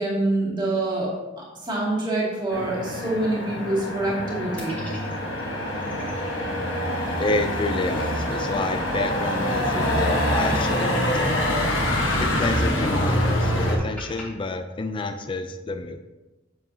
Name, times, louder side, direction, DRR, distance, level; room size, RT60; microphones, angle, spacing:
voice 1, 0.0-4.8, right 2 dB, 25° right, -6 dB, 2.3 m, -26 dB
Motor vehicle (road), 2.5-13.8, equal, 80° left, 1.3 m, -25 dB
sound 1, 4.6-6.3 6.7-6.8 7.0-8.8 9.1-9.2 9.7-11.3 11.9-14.2, left 1 dB, 10° left, 2.1 m, -42 dB
sound 2, 4.8-10.6, right 1 dB, 55° right, 1.5 m, -41 dB
voice 2, 7.2-11.7 12.2-16.0, left 2 dB, 25° left, 7 dB, 0.4 m, -29 dB
8.1 x 7.5 x 2.8 m, 1.1 s
head